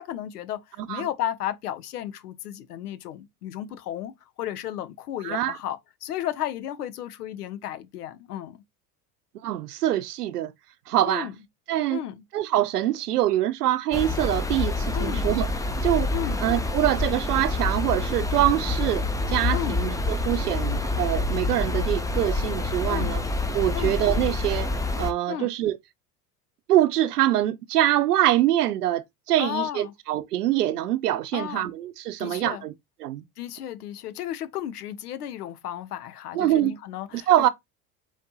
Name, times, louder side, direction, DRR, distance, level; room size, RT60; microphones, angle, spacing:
voice 1, 0.0-4.1 4.4-8.6 11.0-11.3 11.9-12.2 14.9-15.2 16.1-16.4 19.5-19.8 22.9-23.2 23.7-24.0 25.3-25.5 29.4-29.9 31.3-31.7 32.2-32.6 33.4-37.5, left 11 dB, 75° left, 0.8 m, -33 dB
voice 2, 5.2-5.6 9.4-10.5 10.9-11.3 11.7-12.0 12.3-15.5 15.8-16.1 16.4-23.2 23.5-24.7 25.0-25.8 26.7-32.7 33.0-33.2 36.3-36.7 37.1-37.5, right 13 dB, 80° right, 0.6 m, -24 dB
sound 1, 13.9-25.1, left 2 dB, 5° left, 0.6 m, -27 dB
5.0 x 3.1 x 2.8 m
figure-of-eight pair, 70°, 46 cm